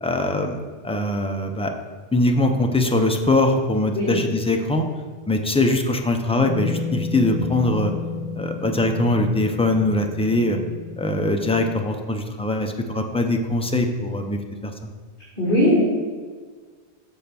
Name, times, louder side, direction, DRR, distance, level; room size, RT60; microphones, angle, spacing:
voice 1, 0.0-0.6 0.8-1.7 2.1-4.8 5.3-7.9 8.4-10.6 11.0-14.9, left 2 dB, 10° left, 4 dB, 0.4 m, -22 dB
sound 1, 6.4-11.7, left 4 dB, 75° right, 1.6 m, -32 dB
voice 2, 15.4-15.8, left 1 dB, 50° left, -8 dB, 2.3 m, -18 dB
7.0 x 4.4 x 6.8 m, 1.5 s
omnidirectional pair, 1.1 m